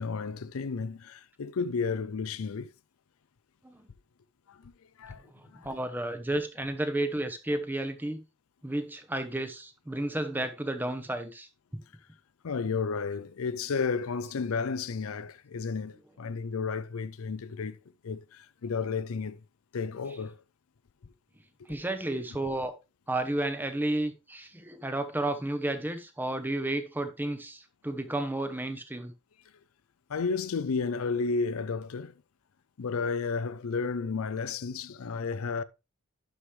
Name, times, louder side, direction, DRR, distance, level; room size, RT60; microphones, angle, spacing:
voice 1, 0.0-2.7 4.5-4.7 5.0-5.7 12.4-19.4 19.7-20.4 30.1-32.1 32.8-35.6, left 5 dB, 90° left, 0.5 m, -32 dB
voice 2, 5.5-8.2 8.6-11.5 11.7-11.8 21.7-22.7 23.1-29.1, right 1 dB, 10° right, 0.8 m, -32 dB
11.5 x 5.0 x 3.2 m
head